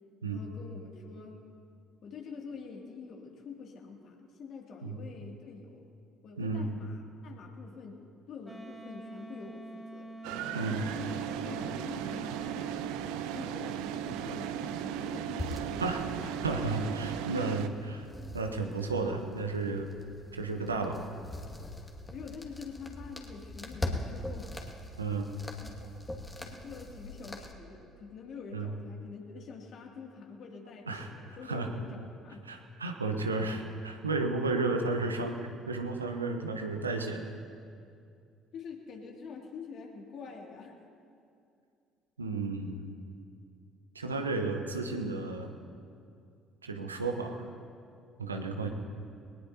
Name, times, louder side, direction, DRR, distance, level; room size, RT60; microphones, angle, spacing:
voice 1, 0.3-1.4 2.0-5.9 6.2-10.1 10.9-16.5 22.1-24.5 25.6-25.9 26.4-32.5 38.5-40.8, left 5 dB, 55° left, 0 dB, 2.5 m, -46 dB
Wind instrument woodwind instrument, 8.4-12.6, right 1 dB, 5° right, 2.6 m, -46 dB
sound 1, 10.2-17.7, right 9 dB, 70° right, 0.7 m, -36 dB
sound 2, 15.4-27.5, left 1 dB, 20° left, 2.1 m, -42 dB
voice 2, 16.4-18.1 18.3-19.9 20.3-21.0 25.0-25.3 28.5-28.7 30.9-31.1 31.4-31.7 32.5-35.4 35.7-37.3 42.2-42.8 43.9-45.6 46.6-47.4 48.2-48.7, right 3 dB, 90° right, 5 dB, 1.0 m, -32 dB
21.5 x 19.5 x 2.9 m, 2.4 s
figure-of-eight pair, 50°, 0 cm